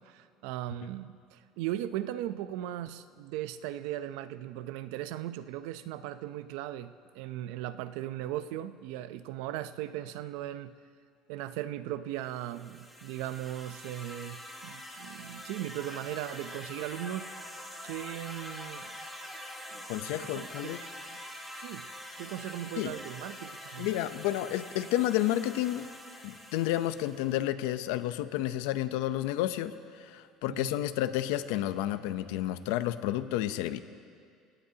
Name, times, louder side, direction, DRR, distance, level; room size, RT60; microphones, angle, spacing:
voice 1, 0.0-10.7 11.3-17.3 17.8-18.9 19.7-19.9 20.2-20.7 21.6-21.9 22.2-23.9 30.5-30.7, right 13 dB, 75° right, 12 dB, 0.6 m, -38 dB
sound 1, 12.3-27.4, left 1 dB, ahead, 1.3 m, -45 dB
voice 2, 19.9-20.8 22.8-22.9 23.8-25.9 26.2-33.8, left 13 dB, 90° left, 12 dB, 0.7 m, -31 dB
27.0 x 18.0 x 2.9 m, 2.2 s
cardioid pair, 180°, 0 cm